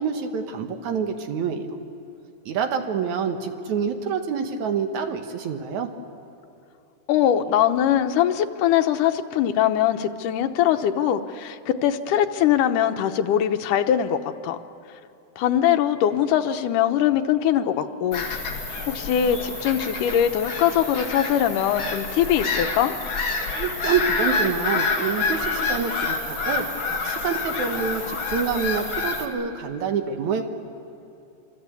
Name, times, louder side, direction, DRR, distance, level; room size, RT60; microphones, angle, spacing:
voice 1, 0.0-1.7 2.5-5.9 23.5-30.4, right 6 dB, 70° right, 6 dB, 2.8 m, -27 dB
voice 2, 7.1-14.6 15.4-18.3 18.9-22.9, left 10 dB, 85° left, 7 dB, 2.5 m, -22 dB
Bird vocalization bird call bird song / Gull seagull, 18.1-29.2, left 4 dB, 45° left, 2.5 m, -28 dB
26.0 x 25.5 x 8.3 m, 2.7 s
omnidirectional pair, 3.6 m